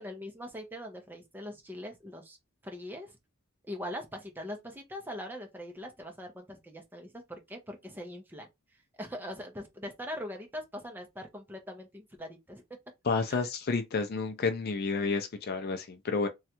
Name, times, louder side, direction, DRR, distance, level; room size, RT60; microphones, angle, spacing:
voice 1, 0.0-2.4 2.6-3.2 3.7-8.5 9.0-12.6 13.3-13.4, left 1 dB, 10° right, 0.6 m, -42 dB
voice 2, 13.1-16.3, left 4 dB, 45° left, 0.4 m, -30 dB
3.1 x 2.3 x 2.8 m
head